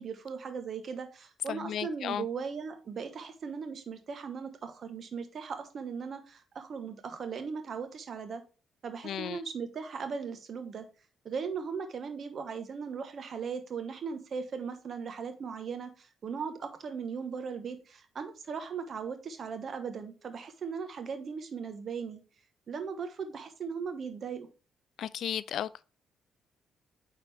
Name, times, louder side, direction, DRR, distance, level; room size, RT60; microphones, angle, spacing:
voice 1, 0.0-8.4 8.8-10.9 11.2-22.2 22.7-24.5, right 6 dB, 50° right, 1.1 m, -38 dB
voice 2, 1.5-2.2 9.0-9.4 25.0-25.9, left 10 dB, 70° left, 0.3 m, -34 dB
9.2 x 3.8 x 3.4 m
cardioid pair, 90°, 0 cm